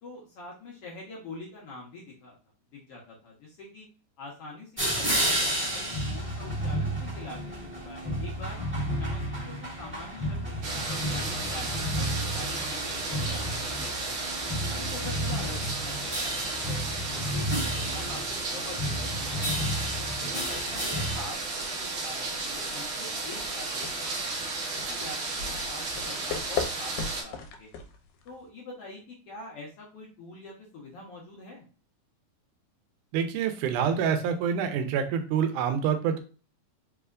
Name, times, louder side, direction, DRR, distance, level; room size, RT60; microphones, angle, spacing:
voice 1, 0.0-2.4 2.7-3.9 4.2-8.6 8.9-14.1 14.7-16.8 17.1-19.7 20.2-24.2 24.7-27.7 28.2-31.7, left 2 dB, 65° left, -3 dB, 1.6 m, -45 dB
sound 1, 4.8-21.2, equal, 5° right, 1.3 m, -32 dB
sound 2, 10.6-27.2, right 3 dB, 60° right, 1.4 m, -33 dB
sound 3, 22.8-28.5, left 6 dB, 85° left, 2.1 m, -38 dB
voice 2, 33.1-36.2, right 7 dB, 85° right, 8 dB, 2.1 m, -27 dB
4.8 x 3.4 x 2.4 m, 0.36 s
omnidirectional pair, 3.6 m